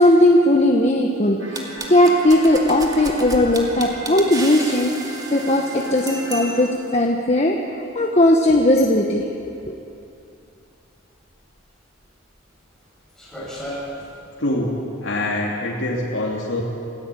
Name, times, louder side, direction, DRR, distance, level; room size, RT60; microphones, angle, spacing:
voice 1, 0.0-1.4 1.9-7.6 7.9-9.2 9.7-9.8, left 1 dB, 35° left, 1 dB, 1.4 m, -17 dB
sound 1, 1.4-6.6, right 2 dB, 70° right, 3.3 m, -36 dB
sound 2, 1.5-6.9, right 2 dB, 20° right, 2.5 m, -34 dB
sound 3, 7.9-14.2, equal, 5° left, 6.7 m, -38 dB
voice 2, 14.4-16.6, left 1 dB, 70° left, -4 dB, 2.8 m, -24 dB
28.0 x 16.5 x 8.4 m, 2.6 s
head